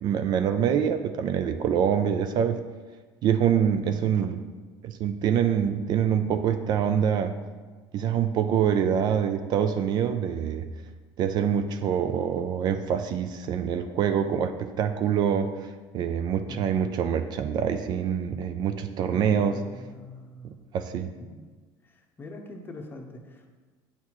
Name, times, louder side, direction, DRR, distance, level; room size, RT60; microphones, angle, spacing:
voice 1, 0.0-2.6 3.2-4.4 4.8-7.3 7.9-10.7 11.2-19.6 20.4-21.1, right 8 dB, 45° right, 9 dB, 0.3 m, -25 dB
voice 2, 19.1-20.5 21.3-21.4 21.8-23.5, left 1 dB, 20° left, 3 dB, 0.7 m, -43 dB
8.5 x 4.1 x 3.0 m, 1.4 s
cardioid pair, 130°, 10 cm